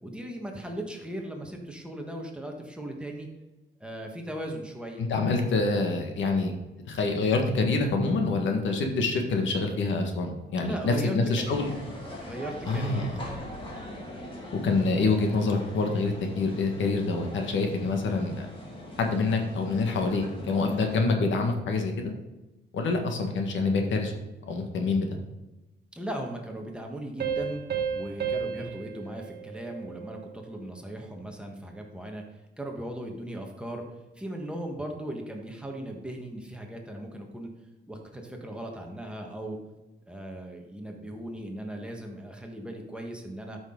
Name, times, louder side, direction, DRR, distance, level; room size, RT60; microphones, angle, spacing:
voice 1, 0.0-3.3 3.8-5.0 10.5-11.7 12.2-13.5 25.9-27.6 27.9-32.2 32.6-33.8 34.1-37.5 37.9-39.6 40.1-43.6, right 1 dB, 5° right, 1 dB, 1.4 m, -38 dB
voice 2, 5.0-6.5 6.9-11.7 12.7-13.2 14.6-18.5 19.0-22.1 22.7-24.1 24.5-25.1, left 3 dB, 85° left, 3 dB, 1.6 m, -26 dB
sound 1, 11.4-21.0, left 1 dB, 25° left, 2.4 m, -41 dB
Piano, 27.2-30.5, right 7 dB, 60° right, 1.5 m, -33 dB
12.5 x 6.1 x 3.9 m, 1.1 s
wide cardioid pair, 135°, 19 cm